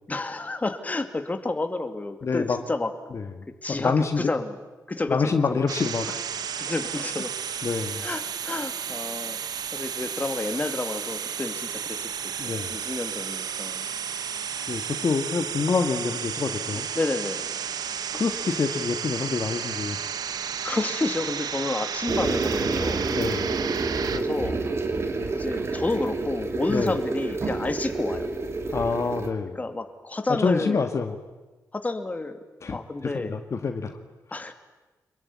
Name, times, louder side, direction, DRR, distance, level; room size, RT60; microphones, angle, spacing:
voice 1, 0.1-2.9 3.6-4.6 4.9-5.6 6.6-7.3 8.0-9.4 9.7-13.9 16.7-17.4 20.6-23.1 24.1-24.6 25.3-28.3 29.6-30.9 31.7-32.4 32.7-33.4 34.3-34.5, left 2 dB, 25° left, 7 dB, 2.4 m, -30 dB
voice 2, 2.2-2.6 3.1-3.2 3.7-4.3 5.1-6.2 7.6-8.0 12.4-12.8 14.7-16.9 18.1-20.0 23.1-23.5 26.7-26.9 28.7-29.6 30.3-31.1 32.6-32.8 33.1-34.0, left 4 dB, 45° left, 6 dB, 1.8 m, -26 dB
sound 1, 5.7-24.2, right 7 dB, 80° right, 1.2 m, -32 dB
sound 2, 22.1-29.3, right 3 dB, 40° right, 3.0 m, -28 dB
27.0 x 22.0 x 9.8 m, 1.2 s
wide cardioid pair, 110°, 7 cm